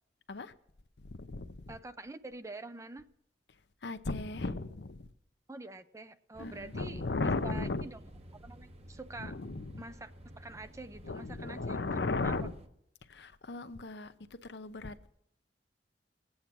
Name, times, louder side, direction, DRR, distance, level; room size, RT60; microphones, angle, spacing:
voice 1, 1.0-1.8 3.5-5.1 6.4-7.9 9.2-9.9 11.0-12.5 13.0-15.1, left 3 dB, 65° left, 0.7 m, -36 dB
voice 2, 1.7-3.1 5.5-8.0 8.3-9.4 9.8-10.1 10.4-11.9 12.2-12.4, right 2 dB, 15° right, 0.5 m, -46 dB
sound 1, 6.3-12.7, equal, 35° right, 1.0 m, -53 dB
18.0 x 8.8 x 6.0 m
head